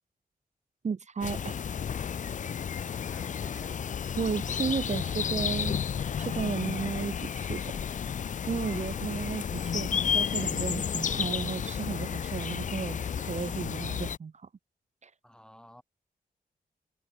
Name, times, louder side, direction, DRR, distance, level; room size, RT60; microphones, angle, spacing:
voice 1, 0.8-1.6 4.2-5.7 6.2-7.7 8.5-14.5 15.0-15.1, right 5 dB, 45° right, 1.0 m, -34 dB
sound 1, 1.2-14.2, left 7 dB, 50° left, 0.5 m, -32 dB
voice 2, 2.7-3.8 8.6-9.1 15.2-15.8, equal, 5° left, 2.4 m, -54 dB
wide cardioid pair, 140°, 16 cm